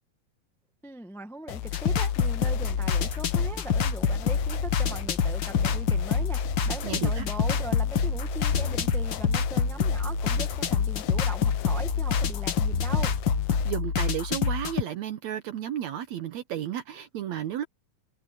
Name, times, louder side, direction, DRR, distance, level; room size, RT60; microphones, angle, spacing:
voice 1, 0.8-13.1, right 2 dB, ahead, 0.5 m, -40 dB
sound 1, 1.5-13.7, left 13 dB, 80° left, 2.5 m, -37 dB
sound 2, 1.7-14.8, left 6 dB, 50° left, 1.4 m, -27 dB
voice 2, 6.8-7.3 13.7-17.6, right 10 dB, 70° right, 1.9 m, -33 dB
sound 3, 8.5-9.6 12.7-13.6, left 5 dB, 65° left, 0.6 m, -35 dB
omnidirectional pair, 4.1 m